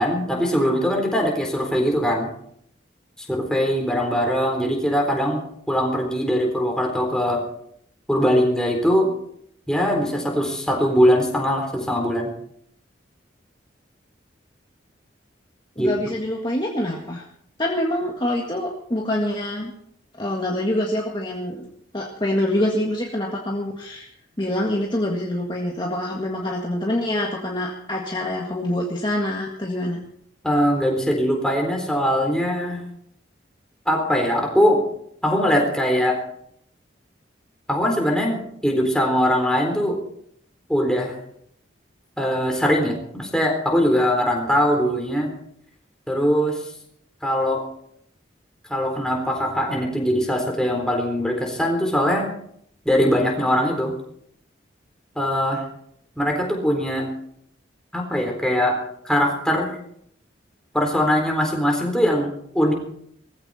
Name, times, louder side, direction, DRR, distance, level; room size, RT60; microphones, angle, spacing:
voice 1, 0.0-2.3 3.3-5.4 5.7-7.4 8.1-9.1 9.7-12.3 15.8-15.9 30.4-32.8 33.9-34.8 35.2-36.2 37.7-40.0 40.7-41.1 42.2-45.3 46.1-46.6 47.2-47.6 48.7-52.3 52.9-53.9 55.2-55.6 56.2-57.1 57.9-58.8 59.0-59.7 60.7-62.7, equal, 5° left, 0 dB, 4.0 m, -21 dB
voice 2, 15.8-17.3 17.6-19.7 20.2-21.7 21.9-24.1 24.4-30.0, left 1 dB, 25° left, -1 dB, 1.8 m, -25 dB
19.0 x 15.5 x 4.3 m, 0.69 s
head